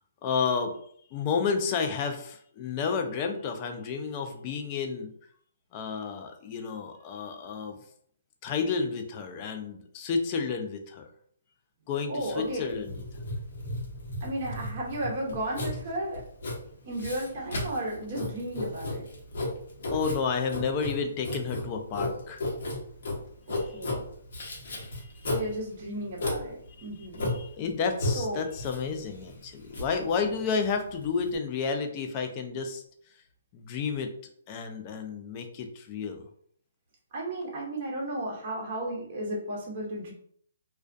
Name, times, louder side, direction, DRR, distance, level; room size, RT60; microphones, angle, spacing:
voice 1, 0.2-0.8 1.1-5.1 5.7-7.8 8.4-11.1 11.9-13.0 19.9-22.4 23.5-23.8 25.0-25.1 26.8-26.9 27.2-32.8 33.5-34.1 34.5-36.3, left 5 dB, 25° left, 5 dB, 0.3 m, -31 dB
voice 2, 12.1-12.7 14.2-16.2 16.8-19.0 23.5-24.0 25.3-27.3 28.1-28.4 37.1-40.1, right 1 dB, 35° right, -3 dB, 0.8 m, -34 dB
Writing, 12.2-31.4, left 1 dB, 60° left, 0.9 m, -34 dB
2.2 x 2.2 x 2.5 m, 0.62 s
hypercardioid pair, 160°, 0 cm